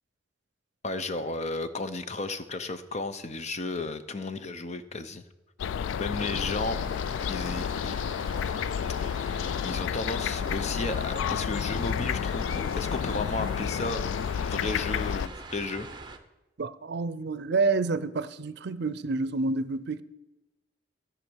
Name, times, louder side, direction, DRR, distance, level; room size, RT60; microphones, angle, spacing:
voice 1, 0.8-5.2 6.0-6.8 7.3-8.0 9.6-14.0 14.4-15.9, left 3 dB, 40° left, 0.7 m, -33 dB
sound 1, 5.6-15.3, left 8 dB, 85° left, 0.3 m, -30 dB
sound 2, 6.1-16.2, right 3 dB, 25° right, 0.8 m, -44 dB
voice 2, 16.6-20.0, right 3 dB, 60° right, 0.6 m, -28 dB
13.5 x 6.2 x 6.3 m
head